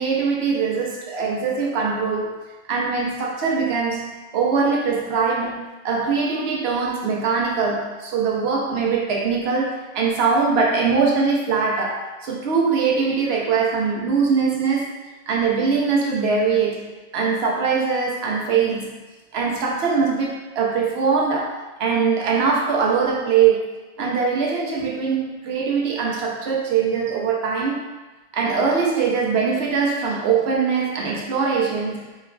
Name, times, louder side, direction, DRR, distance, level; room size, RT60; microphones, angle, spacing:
voice 1, 0.0-2.3 2.7-4.1 4.3-5.6 5.8-14.9 15.3-19.0 19.3-23.7 24.0-27.8 28.3-32.0, right 5 dB, 75° right, -2 dB, 0.9 m, -22 dB
4.4 x 2.3 x 2.2 m, 1.2 s
omnidirectional pair, 1.1 m